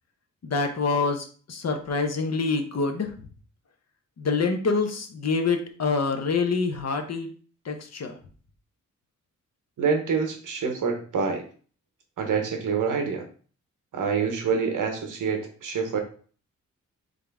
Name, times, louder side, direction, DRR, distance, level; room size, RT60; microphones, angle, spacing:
voice 1, 0.4-3.1 4.2-7.3 7.6-8.1, left 4 dB, 55° left, 5 dB, 0.9 m, -26 dB
voice 2, 9.8-11.4 12.2-13.2 13.9-16.0, right 5 dB, 85° right, 4 dB, 1.0 m, -26 dB
3.8 x 3.6 x 3.4 m, 0.42 s
wide cardioid pair, 95°, 31 cm